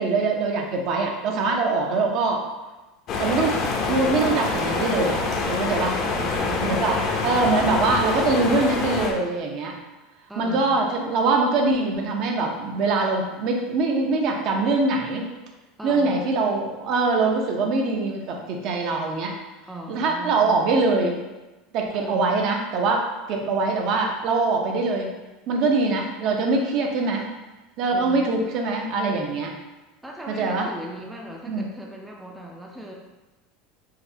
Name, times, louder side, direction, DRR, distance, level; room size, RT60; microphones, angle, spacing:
voice 1, 0.0-2.4 3.2-3.5 3.8-5.2 5.5-6.0 6.6-9.8 10.4-15.3 15.8-19.4 19.9-21.2 21.7-25.1 25.5-27.3 27.8-29.5 30.3-30.7 31.5-31.7, right 3 dB, 50° right, 1 dB, 0.6 m, -23 dB
sound 1, 3.1-9.1, left 3 dB, 45° left, 0.5 m, -25 dB
voice 2, 6.0-7.0 10.3-10.7 15.8-16.2 19.7-20.6 21.9-22.4 27.9-28.3 30.0-32.9, right 1 dB, 5° right, -1 dB, 0.4 m, -38 dB
4.9 x 2.1 x 2.6 m, 1.1 s
supercardioid pair, 130°, 0 cm